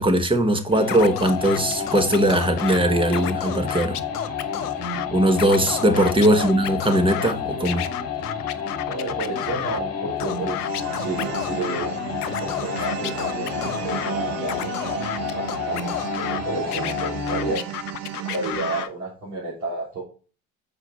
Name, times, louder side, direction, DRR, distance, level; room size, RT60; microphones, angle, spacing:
voice 1, 0.0-4.0 5.1-7.9, right 1 dB, 10° right, 1.3 m, -20 dB
sound 1, 0.7-17.7, left 7 dB, 35° left, 1.5 m, -30 dB
Scratching (performance technique), 0.9-2.8 3.1-5.1 5.3-7.3 7.6-9.8 10.2-11.9 12.2-14.1 14.4-16.4 16.7-18.9, left 11 dB, 80° left, 0.6 m, -32 dB
voice 2, 8.9-11.9 12.4-15.9 16.2-17.6 18.2-20.0, right 2 dB, 75° right, 3.6 m, -31 dB
sound 2, 10.7-18.8, right 12 dB, 50° right, 0.9 m, -34 dB
7.1 x 4.9 x 4.2 m
figure-of-eight pair, 65°, 45 cm